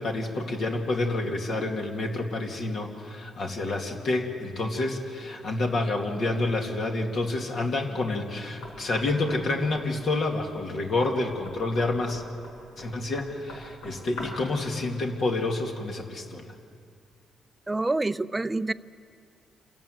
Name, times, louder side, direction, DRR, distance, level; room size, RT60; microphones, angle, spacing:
voice 1, 0.0-12.2 12.8-16.4, left 2 dB, 55° left, 1 dB, 2.5 m, -28 dB
Knock, 8.6-14.5, left 1 dB, 90° left, 5.0 m, -44 dB
voice 2, 17.7-18.7, right 2 dB, 15° right, 13 dB, 0.5 m, -27 dB
28.0 x 14.0 x 9.5 m, 2.4 s
cardioid pair, 90°, 0 cm